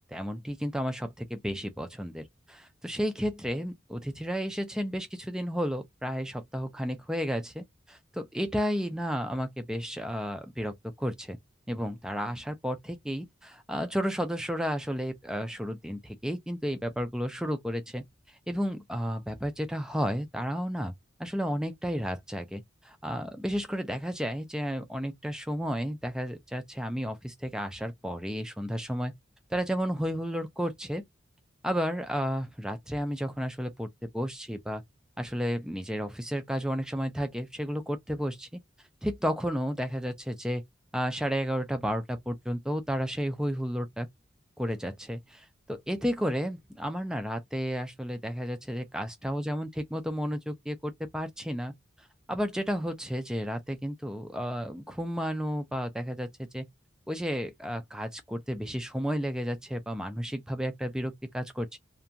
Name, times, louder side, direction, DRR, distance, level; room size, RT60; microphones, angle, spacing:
voice 1, 0.1-11.4 11.7-20.9 21.2-29.1 29.5-31.0 31.6-34.8 35.2-38.5 39.0-40.6 40.9-44.1 44.6-51.7 52.0-56.7 57.1-61.8, equal, 5° right, 0.3 m, -32 dB
2.4 x 2.2 x 2.7 m
head